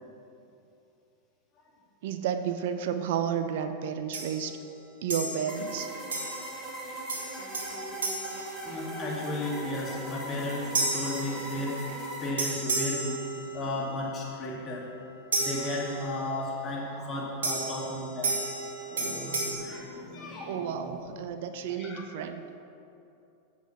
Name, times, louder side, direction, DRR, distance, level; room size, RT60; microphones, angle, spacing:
voice 1, 2.0-4.6 5.0-5.9 20.5-22.4, right 8 dB, 55° right, 8 dB, 0.5 m, -31 dB
sound 1, 4.1-4.5 5.1-5.7 6.1-6.7 7.1-9.2 10.7-11.9 12.4-13.8 15.3-16.3 17.4-19.5, right 2 dB, 70° right, 1.7 m, -33 dB
sound 2, 5.5-12.3, equal, 10° right, 2.4 m, -39 dB
voice 2, 8.6-13.2 13.5-14.9 15.3-18.4 18.8-21.0 21.8-22.0, left 1 dB, 25° left, -3 dB, 2.2 m, -35 dB
8.1 x 5.9 x 7.2 m, 2.7 s
figure-of-eight pair, 90°, 0 cm